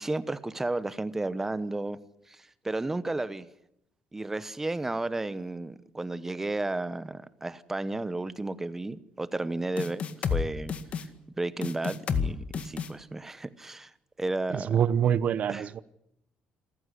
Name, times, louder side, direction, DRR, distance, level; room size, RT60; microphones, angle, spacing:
voice 1, 0.0-2.0 2.3-3.5 4.1-10.0 10.3-10.7 11.4-13.9 14.2-14.8 15.5-15.7, right 2 dB, 10° right, 1.0 m, -33 dB
sound 1, 9.8-10.4 10.7-11.0 11.6-12.3 12.5-12.9, left 7 dB, 45° left, 1.9 m, -29 dB
voice 2, 14.7-15.8, right 8 dB, 50° right, 0.9 m, -25 dB
27.0 x 14.5 x 9.9 m
cardioid pair, 135°, 3 cm